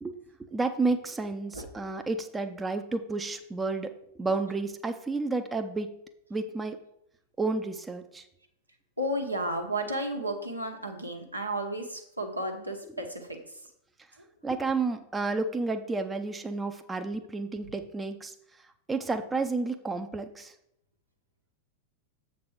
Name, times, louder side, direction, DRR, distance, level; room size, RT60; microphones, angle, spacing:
voice 1, 0.0-5.9 6.3-6.8 7.4-8.2 14.4-18.3 18.9-20.5, right 3 dB, 10° right, 7 dB, 0.6 m, -31 dB
voice 2, 9.0-13.6, right 1 dB, 85° right, 2 dB, 1.2 m, -33 dB
7.5 x 4.1 x 6.1 m, 0.76 s
figure-of-eight pair, 90°, 0 cm